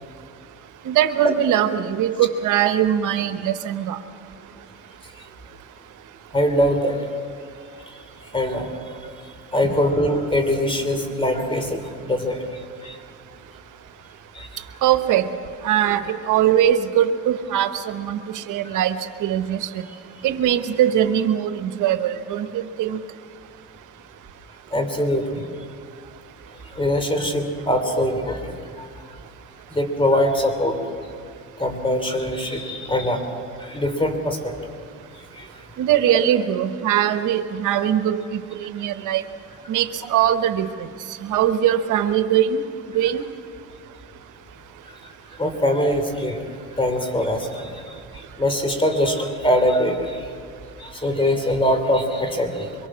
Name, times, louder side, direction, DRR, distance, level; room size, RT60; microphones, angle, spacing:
voice 1, 0.8-4.0 14.8-15.3 15.6-19.7 20.2-23.0 35.8-39.2 39.7-40.7 41.2-42.6 42.9-43.2, right 10 dB, 85° right, 9 dB, 1.1 m, -21 dB
voice 2, 6.3-7.0 8.3-8.7 9.5-12.4 12.8-13.0 14.3-14.6 24.7-25.5 26.7-28.9 29.7-30.8 31.6-33.2 33.6-34.5 35.4-35.5 44.9-45.0 45.4-46.4 46.7-50.3 50.8-52.7, left 1 dB, 15° left, 6 dB, 3.2 m, -22 dB
23.5 x 23.0 x 6.2 m, 2.2 s
cardioid pair, 90°, 30 cm